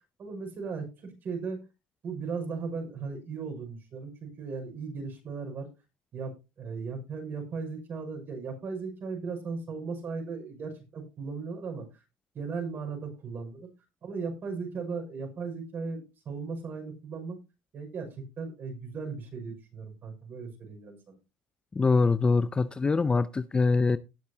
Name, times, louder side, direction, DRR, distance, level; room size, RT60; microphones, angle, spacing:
voice 1, 0.2-1.6 2.0-5.7 6.1-11.8 12.3-13.7 14.0-17.4 17.7-21.2, right 4 dB, 45° right, 6.0 m, -37 dB
voice 2, 21.8-24.0, left 4 dB, 20° left, 0.5 m, -24 dB
18.5 x 6.8 x 2.8 m
cardioid pair, 110°, 5 cm